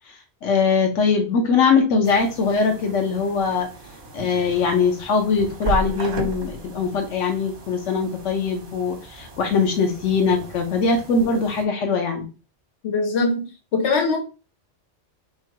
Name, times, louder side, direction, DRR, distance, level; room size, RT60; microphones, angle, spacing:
voice 1, 0.4-3.7 4.1-12.2, left 5 dB, 90° left, 1.1 m, -21 dB
sound 1, 2.0-11.6, right 3 dB, 50° right, 1.0 m, -36 dB
voice 2, 12.8-13.5 13.7-14.2, left 3 dB, 65° left, 1.1 m, -21 dB
3.8 x 2.2 x 4.5 m
omnidirectional pair, 1.2 m